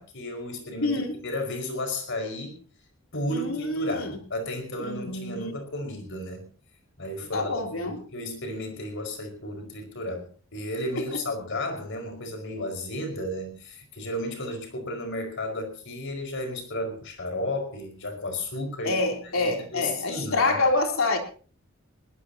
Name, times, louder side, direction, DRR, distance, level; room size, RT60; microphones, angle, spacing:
voice 1, 0.0-2.6 3.1-6.4 7.0-10.3 10.5-20.6, left 1 dB, 65° left, 4 dB, 5.2 m, -33 dB
voice 2, 0.8-1.2 3.3-4.2 4.8-5.5 7.3-8.0 10.9-11.2 18.8-21.2, left 2 dB, 80° left, 3 dB, 3.4 m, -27 dB
21.5 x 18.0 x 2.9 m, 0.40 s
head